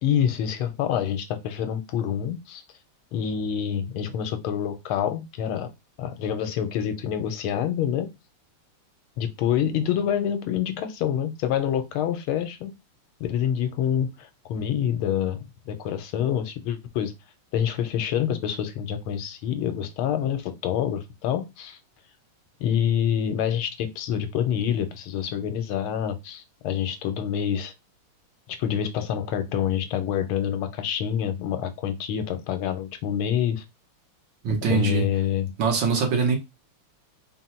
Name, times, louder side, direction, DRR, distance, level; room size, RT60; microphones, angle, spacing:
voice 1, 0.0-2.6 3.1-5.7 6.0-8.1 9.2-12.7 13.2-17.1 17.5-21.8 22.6-27.7 28.5-33.6 34.7-35.5, left 9 dB, 80° left, 1.5 m, -27 dB
voice 2, 34.4-35.0 35.6-36.4, right 5 dB, 65° right, 1.7 m, -23 dB
3.9 x 2.2 x 4.2 m
omnidirectional pair, 2.3 m